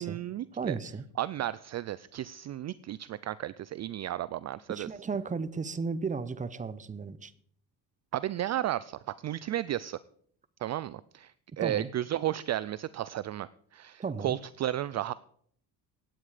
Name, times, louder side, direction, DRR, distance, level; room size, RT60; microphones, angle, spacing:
voice 1, 0.0-0.8 1.2-4.9 8.1-10.0 10.6-15.1, right 13 dB, 45° right, 17 dB, 0.4 m, -33 dB
voice 2, 0.5-1.0 4.7-7.3 11.6-11.9 14.0-14.3, right 5 dB, 20° right, 15 dB, 0.7 m, -34 dB
16.5 x 9.5 x 5.0 m, 0.63 s
cardioid pair, 120°, 39 cm